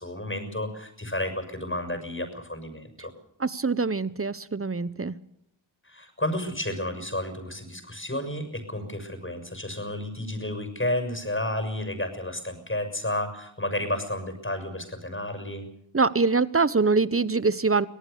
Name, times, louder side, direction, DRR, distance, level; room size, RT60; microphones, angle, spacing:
voice 1, 0.0-3.1 5.8-15.7, left 1 dB, 25° left, 8 dB, 6.5 m, -31 dB
voice 2, 3.4-5.2 15.9-17.9, right 4 dB, 30° right, 16 dB, 1.1 m, -24 dB
25.0 x 18.0 x 7.0 m, 0.73 s
cardioid pair, 45°, 48 cm